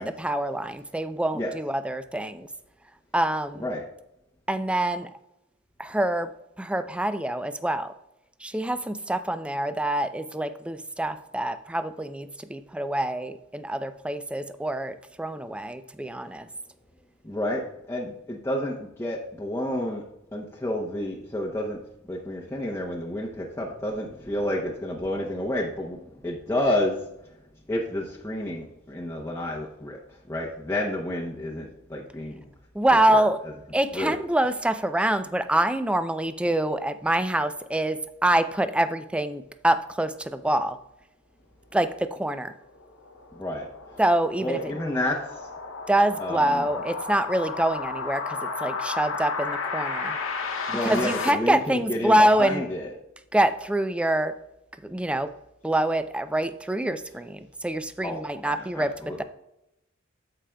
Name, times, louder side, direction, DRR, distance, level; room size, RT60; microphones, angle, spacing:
voice 1, 0.0-2.5 3.1-3.6 4.5-5.1 5.8-6.3 6.6-7.9 8.4-16.5 32.7-33.4 33.7-40.8 41.7-42.5 44.0-44.6 45.9-50.2 50.8-52.6 53.3-54.3 54.8-55.3 55.6-59.2, right 1 dB, 5° right, 10 dB, 0.4 m, -25 dB
voice 2, 17.2-20.0 20.3-21.8 22.1-27.0 27.7-30.0 30.3-32.5 33.1-33.2 33.9-34.2 43.3-43.7 44.4-45.5 46.2-46.7 50.7-52.9 58.0-59.2, left 1 dB, 10° left, -3 dB, 0.7 m, -30 dB
sound 1, 42.6-51.3, left 4 dB, 65° left, 0.8 m, -33 dB
14.5 x 4.9 x 2.3 m, 0.84 s
head